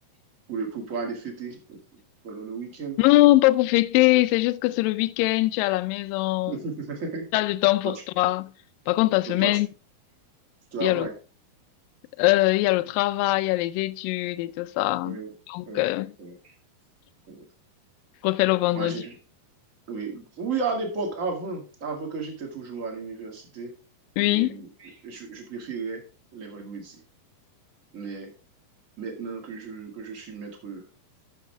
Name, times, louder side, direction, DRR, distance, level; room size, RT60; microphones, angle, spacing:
voice 1, 0.5-1.8 2.2-3.0 6.5-7.3 7.8-8.3 9.3-9.6 10.7-11.1 15.0-15.3 15.6-15.9 16.2-16.5 17.3-17.4 18.7-19.2 19.9-23.7 24.2-26.0 26.3-27.0 27.9-28.3 29.0-30.8, right 4 dB, 30° right, 1.7 m, -34 dB
voice 2, 3.0-6.5 7.3-8.5 8.9-9.7 10.8-11.1 12.2-15.2 15.5-16.1 18.2-19.0 24.2-24.6, left 18 dB, 80° left, 2.1 m, -22 dB
13.5 x 5.6 x 3.3 m
omnidirectional pair, 4.4 m